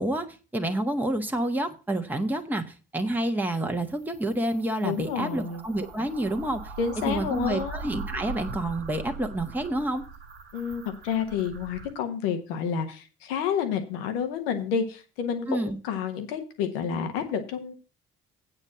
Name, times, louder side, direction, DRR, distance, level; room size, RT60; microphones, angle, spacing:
voice 1, 0.0-6.7 7.1-10.0 15.5-15.8, right 1 dB, 5° right, 4 dB, 1.4 m, -28 dB
sound 1, 3.8-11.9, right 3 dB, 90° right, 1.4 m, -41 dB
voice 2, 4.8-5.6 6.8-7.8 10.5-17.7, left 7 dB, 80° left, 7 dB, 1.5 m, -29 dB
8.9 x 5.4 x 7.4 m, 0.33 s
hypercardioid pair, 50°, 29 cm